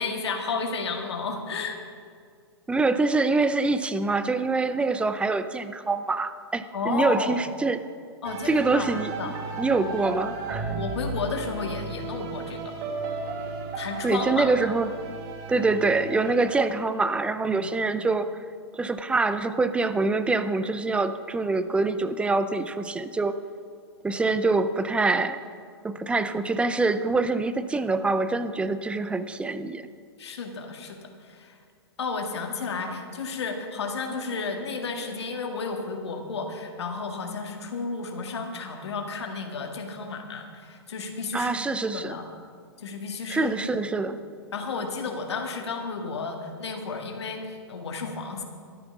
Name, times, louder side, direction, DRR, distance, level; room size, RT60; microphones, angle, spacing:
voice 1, 0.0-1.8 6.7-7.4 8.2-9.3 9.9-10.0 10.4-12.7 13.7-14.5 17.5-17.7 30.2-31.6 32.0-41.5 41.9-42.2 42.8-43.8 44.5-48.4, left 4 dB, 80° left, 3 dB, 2.0 m, -32 dB
voice 2, 2.7-7.8 8.4-10.7 14.0-14.9 15.5-18.4 18.7-23.3 24.0-25.4 25.8-29.9 41.3-42.2 43.3-44.2, right 3 dB, 10° right, 12 dB, 0.6 m, -25 dB
sound 1, 8.2-16.6, right 4 dB, 45° right, 2.0 m, -35 dB
12.5 x 10.5 x 6.1 m, 2.1 s
hypercardioid pair, 125°, 14 cm